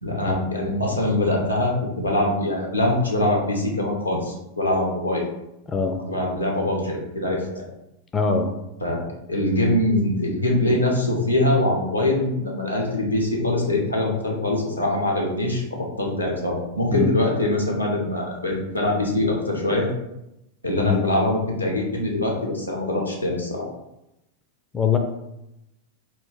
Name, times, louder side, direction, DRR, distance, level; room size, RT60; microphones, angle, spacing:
voice 1, 0.0-5.2 6.1-7.6 8.8-19.9 20.6-23.7, left 1 dB, 90° left, -1 dB, 0.9 m, -23 dB
voice 2, 5.7-6.0 8.1-8.5 16.9-17.1 20.8-21.0 24.7-25.0, left 5 dB, 20° left, 4 dB, 0.4 m, -22 dB
4.3 x 2.5 x 3.6 m, 0.88 s
figure-of-eight pair, 90°, 0 cm